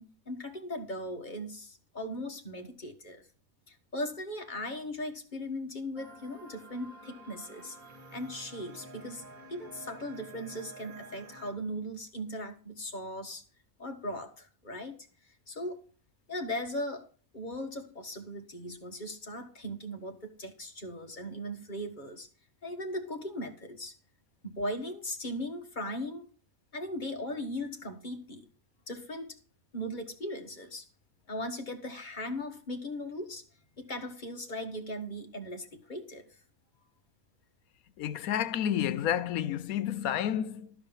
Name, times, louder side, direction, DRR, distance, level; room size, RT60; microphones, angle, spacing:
voice 1, 0.0-3.2 3.7-7.8 8.1-13.4 13.8-15.8 16.3-17.1 17.3-22.3 22.6-23.9 24.4-26.3 26.7-28.5 28.9-29.4 29.7-30.9 31.3-33.4 33.8-36.3, left 1 dB, 35° left, 1.5 m, -38 dB
sound 1, 6.0-11.5, right 2 dB, 75° right, 2.0 m, -50 dB
voice 2, 38.0-40.7, left 10 dB, 85° left, 1.1 m, -30 dB
12.5 x 4.9 x 7.3 m
omnidirectional pair, 1.5 m